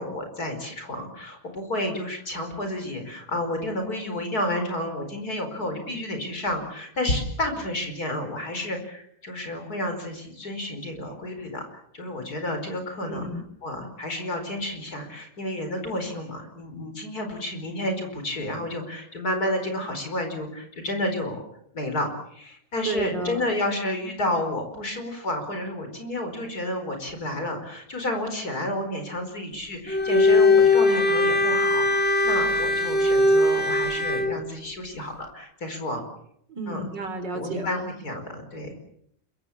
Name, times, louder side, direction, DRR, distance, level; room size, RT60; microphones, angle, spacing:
voice 1, 0.0-11.7 11.9-13.3 13.6-21.4 21.7-36.0 36.7-36.8 37.3-38.7, left 1 dB, 55° left, 6 dB, 5.2 m, -31 dB
voice 2, 13.1-13.4 22.8-23.5 36.5-37.7, right 3 dB, 75° right, 7 dB, 4.6 m, -32 dB
Bowed string instrument, 29.9-34.4, left 2 dB, 5° left, 2.3 m, -20 dB
26.5 x 23.5 x 7.2 m, 0.72 s
omnidirectional pair, 1.9 m